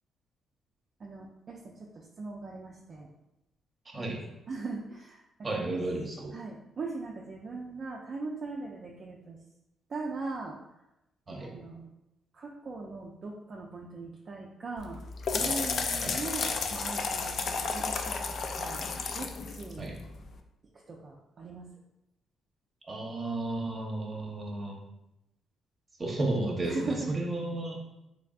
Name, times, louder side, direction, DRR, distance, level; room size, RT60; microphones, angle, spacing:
voice 1, 1.0-3.1 4.0-4.1 4.5-5.2 5.5-5.8 6.3-9.4 9.9-10.6 11.4-11.9 12.3-15.0 15.3-18.9 19.1-19.9 20.9-21.7 26.6-27.2, right 3 dB, 45° right, -2 dB, 0.4 m, -39 dB
voice 2, 3.9-4.2 5.4-6.3 11.3-11.5 16.0-16.2 19.8-20.0 22.9-24.8 26.0-27.8, right 2 dB, 30° right, -1 dB, 0.9 m, -33 dB
sound 1, 14.8-20.4, left 4 dB, 60° left, 0.3 m, -33 dB
3.4 x 3.3 x 2.4 m, 0.90 s
cardioid pair, 90°, 0 cm